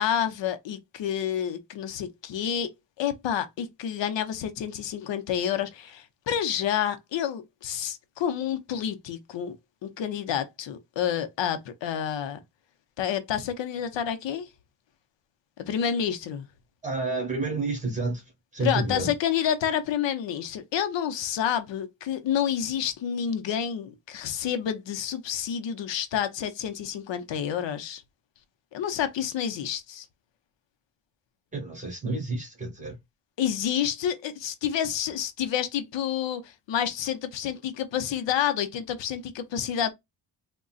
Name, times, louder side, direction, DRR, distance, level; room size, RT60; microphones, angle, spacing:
voice 1, 0.0-2.7 3.0-9.6 9.8-12.4 13.0-14.5 15.6-16.5 18.6-28.0 28.7-30.1 33.4-39.9, left 9 dB, 85° left, 0.7 m, -29 dB
voice 2, 16.8-18.2 18.5-19.1 31.5-33.0, right 3 dB, 15° right, 1.3 m, -29 dB
3.8 x 2.2 x 2.3 m
wide cardioid pair, 175°, 43 cm